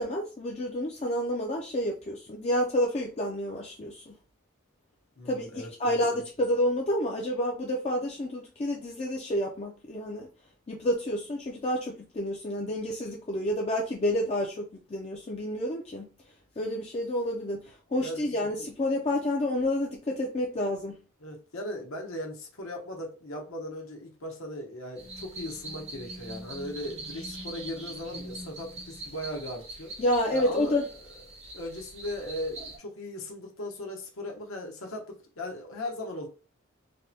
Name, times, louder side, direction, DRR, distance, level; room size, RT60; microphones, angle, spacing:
voice 1, 0.0-4.1 5.3-10.3 10.7-16.1 16.6-21.0 30.0-30.8, left 1 dB, 30° left, 0.4 m, -29 dB
voice 2, 5.2-6.0 18.0-18.5 21.2-30.0 30.3-30.8 31.5-36.3, left 1 dB, 80° left, 0.9 m, -38 dB
sound 1, 25.0-32.8, right 2 dB, 30° right, 0.6 m, -43 dB
3.4 x 2.1 x 2.7 m
head